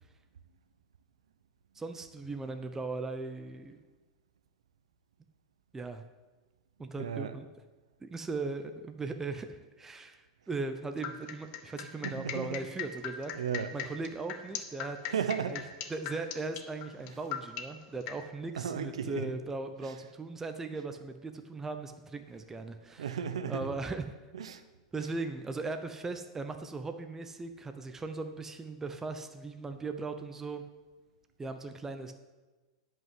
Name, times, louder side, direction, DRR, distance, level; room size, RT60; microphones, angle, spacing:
voice 1, 1.7-3.8 5.7-6.0 6.8-7.5 8.0-13.3 13.7-15.0 15.5-15.6 15.9-23.1 23.5-24.1 24.9-30.6 31.4-32.1, right 3 dB, 15° right, 7 dB, 0.7 m, -38 dB
voice 2, 7.0-7.3 12.0-12.6 13.3-13.7 15.0-15.6 18.6-19.3 19.8-19.9 23.0-23.7 24.3-24.6, right 7 dB, 90° right, 11 dB, 0.9 m, -34 dB
sound 1, 11.0-18.2, left 10 dB, 50° left, 1.2 m, -38 dB
11.0 x 5.6 x 7.6 m, 1.2 s
hypercardioid pair, 115°, 3 cm